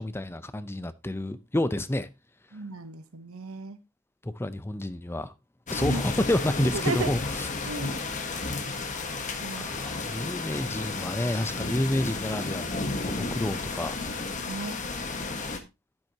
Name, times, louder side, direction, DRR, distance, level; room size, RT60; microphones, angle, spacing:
voice 1, 0.0-2.1 4.2-5.3 5.7-7.5 9.3-12.8 13.2-14.0, left 1 dB, 10° left, 0.5 m, -29 dB
voice 2, 2.5-3.8 5.8-6.0 6.8-7.1 7.7-8.0 9.4-9.9 14.5-14.8, right 3 dB, 85° right, 0.9 m, -35 dB
sound 1, 5.7-15.6, left 3 dB, 35° left, 1.3 m, -32 dB
10.5 x 9.4 x 2.8 m
head